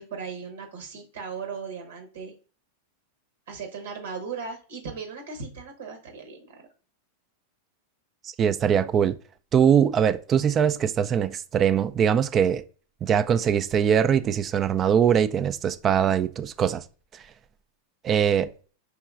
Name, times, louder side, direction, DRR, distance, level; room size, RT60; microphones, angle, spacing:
voice 1, 0.0-2.3 3.5-6.7, right 5 dB, 80° right, 1.1 m, -37 dB
voice 2, 8.4-9.1 9.5-12.6 13.0-16.8 18.0-18.5, right 8 dB, 30° right, 0.3 m, -22 dB
4.6 x 3.0 x 2.4 m
hypercardioid pair, 110°, 0 cm